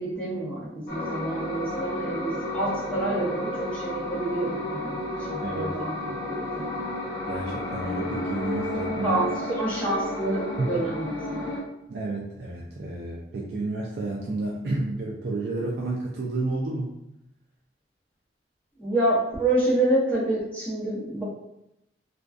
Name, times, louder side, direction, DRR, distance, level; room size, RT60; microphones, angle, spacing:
voice 1, 0.0-6.7 9.0-11.5 18.8-21.2, right 1 dB, 5° left, -8 dB, 0.7 m, -28 dB
sound 1, 0.9-11.6, left 1 dB, 75° left, 0.7 m, -32 dB
voice 2, 5.4-5.7 7.3-9.2 10.6-10.7 11.9-16.9, right 2 dB, 65° right, -3 dB, 0.3 m, -30 dB
2.5 x 2.2 x 2.3 m, 0.84 s
head